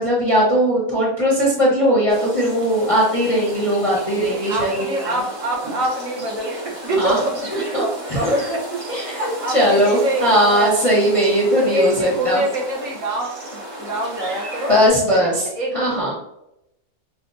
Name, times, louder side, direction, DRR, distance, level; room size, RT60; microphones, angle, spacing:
voice 1, 0.0-4.8 7.0-7.2 7.7-7.8 8.2-8.3 8.9-12.4 14.7-15.5 15.7-16.1, equal, 30° left, -5 dB, 0.7 m, -18 dB
sound 1, 2.1-14.9, right 1 dB, 40° right, 0.5 m, -34 dB
voice 2, 4.3-7.5 7.8-10.7 11.6-14.8 15.1-16.1, right 1 dB, 60° right, -2 dB, 1.1 m, -25 dB
5.8 x 2.1 x 2.5 m, 0.82 s
omnidirectional pair, 1.7 m